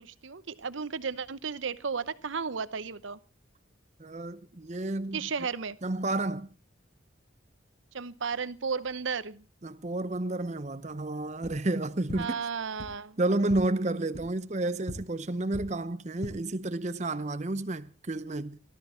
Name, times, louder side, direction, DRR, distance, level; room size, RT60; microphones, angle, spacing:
voice 1, 0.0-3.2 5.1-5.8 7.9-9.4 12.2-13.2, right 5 dB, 75° right, 0.8 m, -34 dB
voice 2, 4.0-5.2 5.8-6.5 9.6-12.4 13.2-18.6, right 2 dB, 35° right, 0.7 m, -31 dB
sound 1, 11.4-11.5 12.1-12.2 12.8-12.9 13.4-13.6 14.1-14.2 14.8-14.9 15.5-15.6 16.1-16.3, equal, 50° left, 5.9 m, -39 dB
19.0 x 13.0 x 4.4 m
head